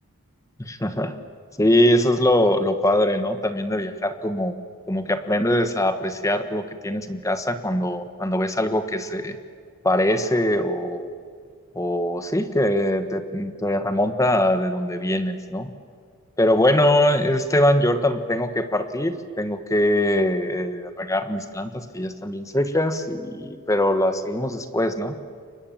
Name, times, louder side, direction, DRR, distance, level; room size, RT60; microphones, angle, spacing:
voice 1, 0.6-1.1 1.6-4.5 4.9-9.4 9.8-11.1 11.7-15.7 16.4-25.1, left 1 dB, 15° left, 9 dB, 1.3 m, -22 dB
29.0 x 24.0 x 7.3 m, 2.1 s
head